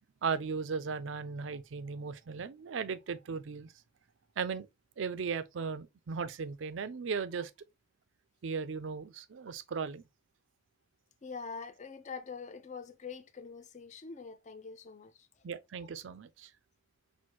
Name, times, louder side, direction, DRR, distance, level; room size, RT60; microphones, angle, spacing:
voice 1, 0.2-3.7 4.4-4.7 5.0-7.5 8.4-10.0 15.4-16.5, right 5 dB, 75° right, 0.4 m, -37 dB
voice 2, 11.2-15.3, left 5 dB, 40° left, 0.5 m, -44 dB
6.0 x 2.2 x 3.1 m
head